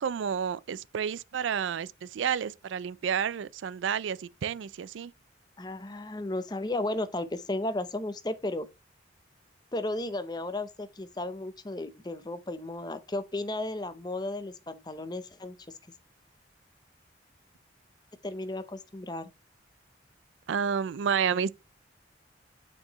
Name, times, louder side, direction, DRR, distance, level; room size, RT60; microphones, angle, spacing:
voice 1, 0.0-5.1 20.5-21.5, right 7 dB, 85° right, 0.4 m, -30 dB
voice 2, 5.6-8.7 9.7-15.6 18.2-19.3, left 2 dB, 20° left, 0.6 m, -34 dB
8.7 x 4.4 x 3.0 m
head